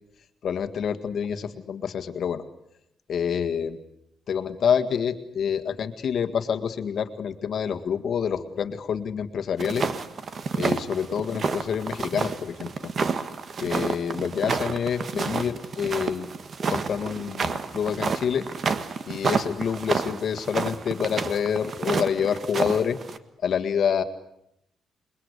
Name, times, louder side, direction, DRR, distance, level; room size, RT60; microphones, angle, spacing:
voice 1, 0.4-2.4 3.1-3.8 4.3-9.9 10.5-12.7 13.6-16.3 16.7-18.5 19.1-23.0 23.4-24.0, left 7 dB, 60° left, 8 dB, 1.7 m, -27 dB
sound 1, 9.6-23.2, right 5 dB, 45° right, 1.6 m, -29 dB
28.5 x 21.5 x 8.2 m, 0.77 s
cardioid pair, 135°, 0 cm